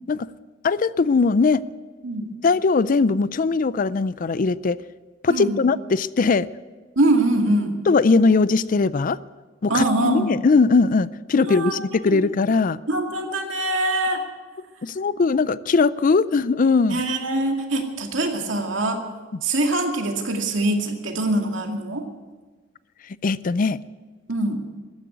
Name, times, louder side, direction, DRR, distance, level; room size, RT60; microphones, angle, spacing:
voice 1, 0.6-1.6 2.4-4.8 5.2-6.5 7.9-9.2 9.6-12.8 14.8-17.0 23.2-23.8, left 4 dB, 45° left, 18 dB, 0.4 m, -20 dB
voice 2, 2.0-2.3 5.3-5.6 7.0-7.8 9.7-10.3 11.4-11.8 12.1-12.2 12.9-14.2 16.9-19.0 19.4-22.1 24.3-24.6, right 2 dB, 90° right, 3 dB, 2.2 m, -23 dB
14.5 x 10.0 x 9.2 m, 1.3 s
head